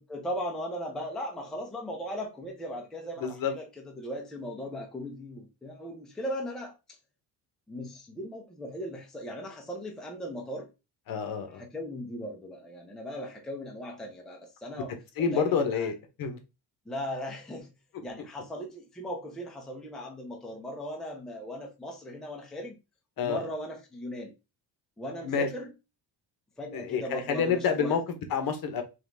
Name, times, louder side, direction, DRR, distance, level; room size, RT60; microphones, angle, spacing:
voice 1, 0.0-6.7 7.7-10.7 11.5-15.9 16.9-17.7 18.0-22.7 23.2-24.3 25.0-25.7 26.6-28.0, equal, ahead, 0.5 m, -38 dB
voice 2, 3.2-3.5 11.1-11.6 15.2-16.4 23.2-23.4 25.2-25.5 26.7-28.0 28.3-28.8, left 6 dB, 60° left, 0.9 m, -28 dB
3.8 x 3.0 x 3.3 m
cardioid pair, 180°, 40 cm